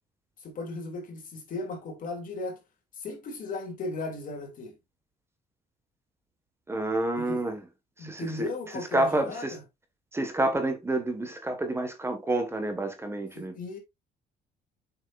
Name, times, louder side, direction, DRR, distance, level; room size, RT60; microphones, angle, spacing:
voice 1, 0.4-2.6 3.0-4.7 7.2-7.4 8.0-9.6 13.3-13.8, left 3 dB, 55° left, 2.9 m, -36 dB
voice 2, 6.7-7.6 8.0-8.5 8.9-9.6 10.1-13.5, right 2 dB, 15° right, 1.7 m, -28 dB
7.7 x 6.2 x 2.6 m
cardioid pair, 110°, 17 cm